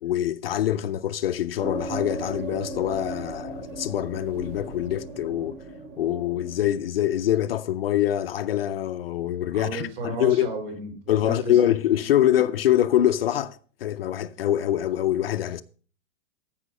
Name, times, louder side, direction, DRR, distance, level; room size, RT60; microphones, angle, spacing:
voice 1, 0.0-5.6 6.0-10.5 11.1-15.6, left 12 dB, 50° left, 0.5 m, -24 dB
sound 1, 1.6-6.7, right 2 dB, 15° right, 0.6 m, -36 dB
voice 2, 9.5-11.6, right 2 dB, 50° right, 3.9 m, -33 dB
14.5 x 5.6 x 5.3 m
supercardioid pair, 175°, 38 cm